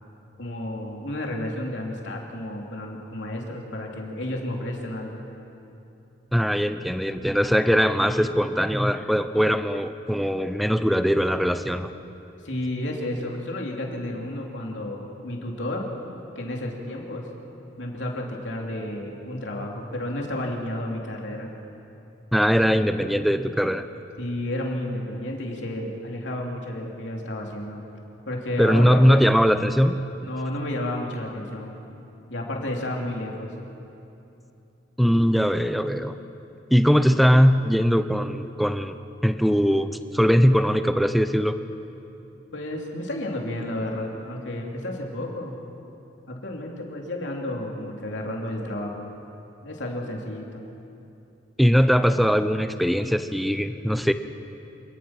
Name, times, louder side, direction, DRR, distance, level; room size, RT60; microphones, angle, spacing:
voice 1, 0.4-5.2 12.4-15.9 16.3-17.3 17.8-21.5 24.2-27.8 28.3-29.2 30.2-31.8 32.3-33.5 42.5-45.6 46.3-49.1 49.6-50.6, left 1 dB, 75° left, 0 dB, 3.1 m, -31 dB
voice 2, 6.3-11.9 22.3-23.9 28.6-30.0 35.0-36.1 36.7-38.9 39.2-41.6 51.6-54.1, equal, ahead, 10 dB, 0.6 m, -20 dB
27.0 x 18.5 x 6.0 m, 2.9 s
head